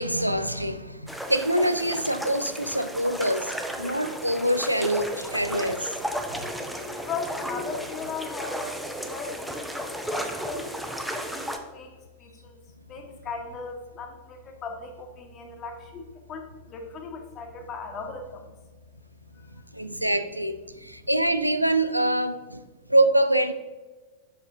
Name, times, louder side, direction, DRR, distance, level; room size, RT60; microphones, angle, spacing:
voice 1, 0.0-5.9 19.7-22.6 22.9-23.5, right 1 dB, 90° right, 11 dB, 0.4 m, -25 dB
sound 1, 1.1-11.6, equal, ahead, 0.7 m, -34 dB
voice 2, 7.0-10.8 11.2-12.6 12.9-18.4 19.3-20.0, left 4 dB, 30° left, 3 dB, 1.2 m, -38 dB
7.0 x 5.6 x 3.7 m, 1.2 s
figure-of-eight pair, 90°, 0 cm